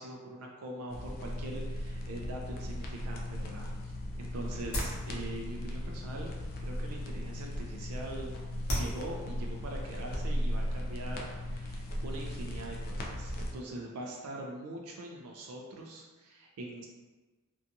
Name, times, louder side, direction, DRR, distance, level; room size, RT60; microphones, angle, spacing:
voice 1, 0.0-3.9 4.2-8.4 8.7-16.9, right 1 dB, 70° right, -1 dB, 0.4 m, -43 dB
sound 1, 0.9-13.5, left 1 dB, 45° left, 0.3 m, -37 dB
sound 2, 3.7-11.4, equal, 65° left, 0.9 m, -42 dB
2.6 x 2.3 x 2.5 m, 1.3 s
head